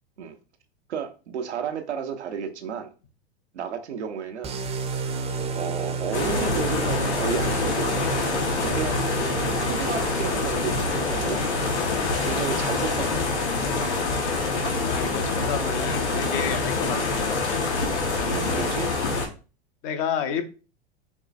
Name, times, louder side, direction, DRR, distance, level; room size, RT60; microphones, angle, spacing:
voice 1, 0.9-2.9 3.5-4.6 5.5-8.4 8.6-9.0 9.4-11.4 12.2-13.7 16.9-17.1 18.2-18.9, right 6 dB, 85° right, 0.8 m, -32 dB
sound 1, 4.4-12.1, right 4 dB, 20° right, 0.6 m, -31 dB
sound 2, 6.1-19.3, left 3 dB, 80° left, 1.1 m, -26 dB
voice 2, 14.8-17.2 19.8-20.4, left 8 dB, 50° left, 0.7 m, -30 dB
4.6 x 3.0 x 2.4 m
hypercardioid pair, 95°, 33 cm